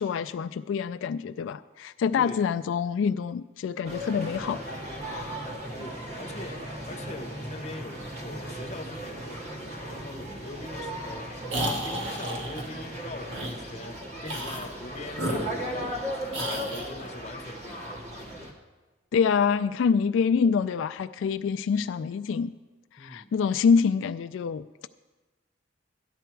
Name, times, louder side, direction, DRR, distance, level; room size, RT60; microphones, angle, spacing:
voice 1, 0.0-4.6 5.0-5.5 19.1-22.5 22.9-24.6, left 6 dB, 85° left, 10 dB, 0.3 m, -26 dB
sound 1, 3.8-18.5, equal, 35° right, 1.7 m, -37 dB
voice 2, 5.8-18.0 23.0-23.3, left 2 dB, 35° left, 5 dB, 0.8 m, -42 dB
sound 2, 11.5-12.6 13.3-13.6 14.2-14.7 15.1-16.0 16.3-16.9, right 1 dB, 75° right, 1.9 m, -32 dB
13.0 x 11.0 x 4.6 m, 1.2 s
head